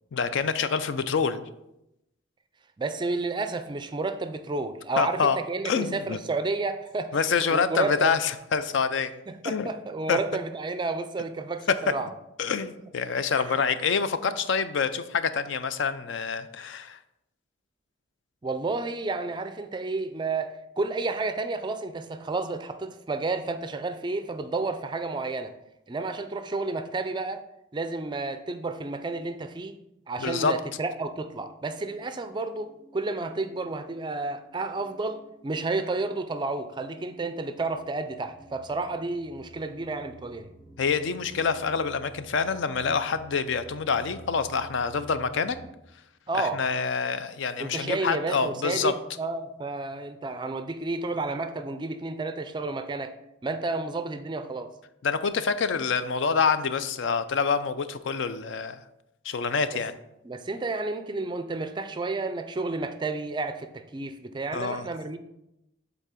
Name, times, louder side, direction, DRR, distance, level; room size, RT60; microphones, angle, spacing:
voice 1, 0.1-1.4 5.0-5.4 5.6-6.2 7.1-9.1 9.4-9.7 10.1-10.2 12.4-17.0 30.2-30.6 40.8-45.6 46.3-49.0 55.0-58.8 59.2-59.9 64.5-64.8, left 5 dB, 65° left, 12 dB, 0.4 m, -26 dB
voice 2, 2.8-7.2 7.5-8.1 9.3-12.1 13.3-13.6 18.4-25.5 25.9-27.4 27.7-29.7 30.1-40.5 46.3-46.6 47.6-53.1 53.4-54.7 60.2-65.2, right 3 dB, 25° right, 9 dB, 0.3 m, -31 dB
sound 1, 31.0-45.7, right 1 dB, 20° left, 2.0 m, -52 dB
8.1 x 4.1 x 3.7 m, 0.86 s
head